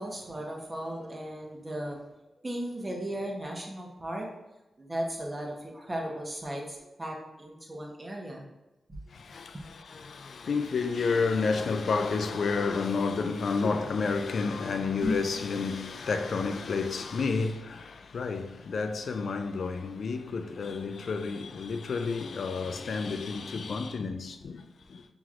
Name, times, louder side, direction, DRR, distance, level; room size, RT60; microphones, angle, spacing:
voice 1, 0.0-2.0 2.4-4.3 4.8-8.4 8.9-9.0 9.5-9.6, right 1 dB, 30° right, 1.0 m, -36 dB
voice 2, 9.1-25.1, left 4 dB, 70° left, 0.3 m, -30 dB
sound 1, 14.9-15.4, left 1 dB, 65° right, 1.2 m, -31 dB
5.7 x 3.0 x 2.5 m
cardioid pair, 55°, 0 cm